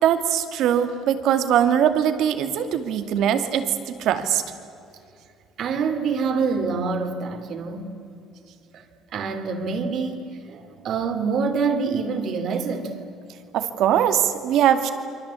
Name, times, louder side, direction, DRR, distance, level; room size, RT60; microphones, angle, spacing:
voice 1, 0.0-4.4 13.5-14.9, right 9 dB, 65° right, 2.4 m, -21 dB
voice 2, 5.6-8.0 8.7-8.8 9.1-13.0, right 5 dB, 50° right, 3.1 m, -26 dB
29.0 x 24.5 x 8.5 m
cardioid pair, 140°, 0 cm